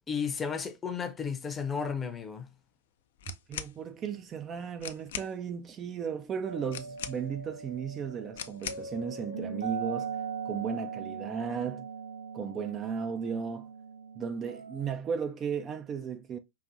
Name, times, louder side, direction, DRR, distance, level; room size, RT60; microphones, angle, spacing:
voice 1, 0.1-2.5, left 6 dB, 20° left, 0.6 m, -33 dB
sound 1, 3.2-3.8 4.5-4.6 4.8-5.3 6.7-7.4 8.3-8.9, left 9 dB, 60° left, 0.3 m, -40 dB
voice 2, 3.5-10.2 10.4-11.9 12.3-13.7 14.2-16.4, right 6 dB, 25° right, 0.3 m, -35 dB
sound 2, 6.5-14.9, right 6 dB, 75° right, 0.6 m, -40 dB
4.7 x 2.5 x 2.5 m
figure-of-eight pair, 90°, 0 cm